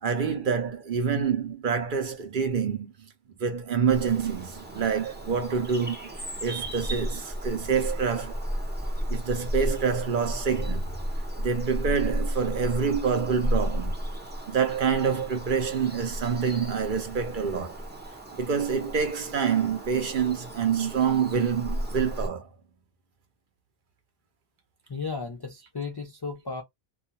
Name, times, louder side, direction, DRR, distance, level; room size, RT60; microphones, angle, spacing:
voice 1, 0.0-3.1 3.4-6.1 6.4-8.5 9.1-10.8 11.4-13.9 14.5-17.8 18.4-22.5, right 6 dB, 55° right, 0.8 m, -27 dB
Bird vocalization bird call bird song, 3.9-22.3, equal, 10° right, 0.6 m, -34 dB
voice 2, 24.9-26.6, left 4 dB, 40° left, 0.3 m, -34 dB
2.4 x 2.3 x 2.7 m
omnidirectional pair, 1.0 m